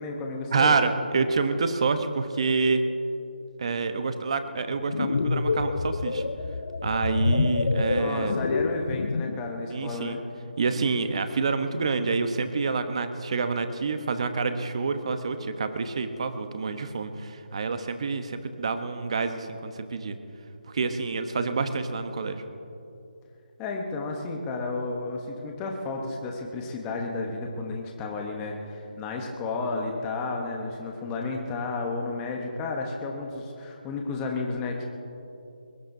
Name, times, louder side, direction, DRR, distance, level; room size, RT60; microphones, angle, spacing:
voice 1, 0.0-0.8 7.9-10.2 23.6-34.8, left 3 dB, 10° left, 1 dB, 1.0 m, -32 dB
voice 2, 0.5-2.8 3.6-6.2 6.8-8.4 9.7-10.2 10.6-20.2 20.7-22.4, right 4 dB, 35° right, 9 dB, 0.9 m, -27 dB
sound 1, 4.7-9.5, left 3 dB, 60° left, 0.6 m, -27 dB
21.0 x 21.0 x 2.7 m, 2.8 s
hypercardioid pair, 170°, 5 cm